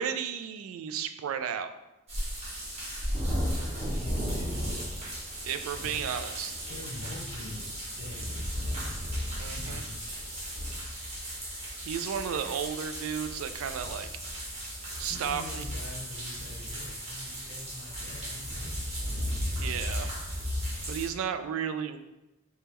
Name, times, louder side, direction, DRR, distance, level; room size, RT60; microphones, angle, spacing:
voice 1, 0.0-1.7 5.5-6.6 9.4-9.8 11.8-14.1 15.0-15.6 19.6-20.1 20.9-22.0, right 8 dB, 75° right, 9 dB, 0.3 m, -33 dB
sound 1, 2.1-21.1, equal, 30° right, 1.0 m, -35 dB
voice 2, 3.8-5.1 5.8-6.0 6.7-8.7 9.3-10.1 14.8-19.0, left 1 dB, 70° left, 1 dB, 0.7 m, -44 dB
3.5 x 3.3 x 3.0 m, 0.95 s
head